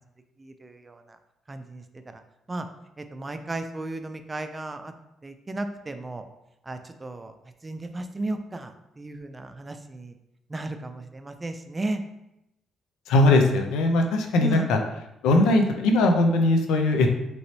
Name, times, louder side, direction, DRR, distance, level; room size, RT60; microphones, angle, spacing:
voice 1, 0.4-1.2 1.5-2.2 2.5-2.7 3.0-4.9 5.2-6.2 6.6-7.3 7.6-10.2 10.5-12.0 14.3-14.8, right 2 dB, 25° right, 8 dB, 0.3 m, -34 dB
voice 2, 13.1-14.8 15.2-17.1, left 2 dB, 90° left, 4 dB, 0.4 m, -20 dB
3.0 x 2.9 x 2.7 m, 0.86 s
cardioid pair, 85°, 0 cm